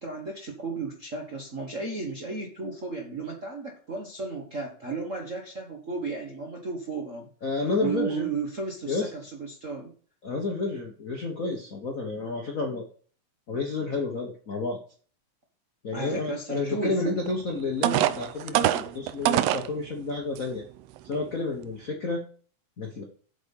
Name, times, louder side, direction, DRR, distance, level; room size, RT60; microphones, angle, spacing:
voice 1, 0.0-7.3 7.8-9.9 15.9-17.2 17.6-17.7, right 4 dB, 55° right, 0 dB, 0.8 m, -34 dB
voice 2, 7.4-8.3 8.9-9.1 10.2-12.9 13.5-14.8 15.8-20.6 21.0-22.2 22.8-23.0, left 3 dB, 90° left, 1 dB, 0.7 m, -30 dB
sound 1, 17.3-17.4 17.8-19.7 20.4-20.5 21.0-21.2, right 13 dB, 90° right, 1.5 m, -24 dB
8.1 x 6.2 x 5.4 m, 0.43 s
omnidirectional pair, 3.5 m